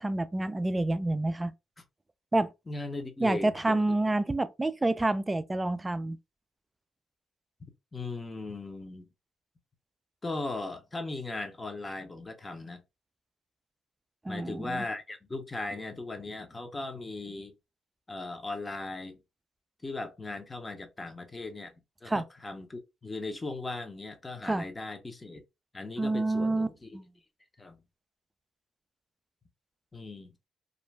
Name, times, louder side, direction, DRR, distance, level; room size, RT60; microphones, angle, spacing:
voice 1, 0.0-1.5 2.3-2.5 3.2-6.2 14.2-14.8 22.1-22.2 24.4-24.6 26.0-26.7 26.9-27.1, right 2 dB, 15° right, 0.3 m, -28 dB
voice 2, 2.7-3.8 7.9-9.1 10.2-12.8 14.3-17.5 18.1-19.2 19.8-21.7 22.0-25.4 25.7-27.0 27.6-27.8 29.9-30.3, left 2 dB, 25° left, 0.7 m, -38 dB
2.5 x 2.1 x 3.2 m
cardioid pair, 75°, 0 cm